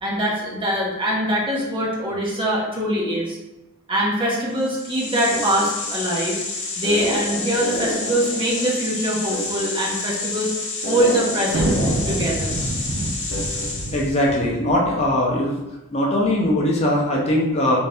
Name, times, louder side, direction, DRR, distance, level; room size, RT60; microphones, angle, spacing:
voice 1, 0.0-3.4 3.9-6.4 6.8-10.5 10.9-11.7 12.1-12.5, right 1 dB, 25° right, -5 dB, 0.9 m, -23 dB
sound 1, 4.6-14.2, left 2 dB, 60° left, 0.8 m, -28 dB
sound 2, 11.5-15.1, right 1 dB, 50° right, 0.5 m, -26 dB
voice 2, 13.9-15.6 15.9-17.8, left 1 dB, 30° left, -3 dB, 0.5 m, -20 dB
3.3 x 2.7 x 3.3 m, 0.99 s
head